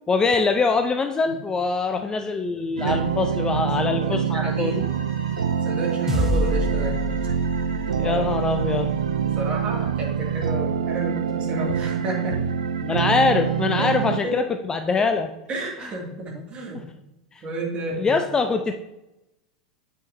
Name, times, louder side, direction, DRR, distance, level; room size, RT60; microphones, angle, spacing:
voice 1, 0.1-4.8 8.0-8.9 12.8-14.4 14.7-15.3 17.3-17.4 18.0-18.7, left 4 dB, 20° left, 7 dB, 0.4 m, -23 dB
voice 2, 2.6-3.1 3.3-3.4 3.8-4.9 5.6-7.0 8.0-8.2 9.2-12.4 13.8-13.9 14.2-14.6 15.5-16.8 17.4-18.1, right 2 dB, 30° right, -1 dB, 2.2 m, -31 dB
sound 1, 2.8-14.2, right 7 dB, 75° right, 0.3 m, -25 dB
sound 2, 4.4-9.6, equal, 70° left, 2.2 m, -46 dB
sound 3, 6.1-10.7, left 1 dB, 10° right, 1.1 m, -29 dB
7.9 x 5.6 x 2.7 m, 0.94 s
figure-of-eight pair, 85°, 4 cm